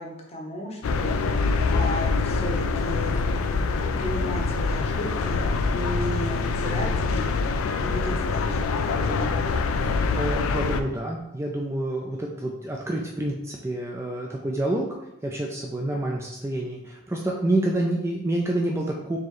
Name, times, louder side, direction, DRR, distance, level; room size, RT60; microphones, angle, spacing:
voice 1, 0.0-3.2 3.8-7.5 7.8-9.6, equal, 30° left, 0 dB, 0.7 m, -34 dB
sound 1, 0.8-10.8, left 4 dB, 80° left, 0.3 m, -25 dB
voice 2, 9.7-14.9 15.2-19.2, right 1 dB, 15° right, -1 dB, 0.3 m, -28 dB
4.5 x 3.1 x 3.0 m, 0.88 s
head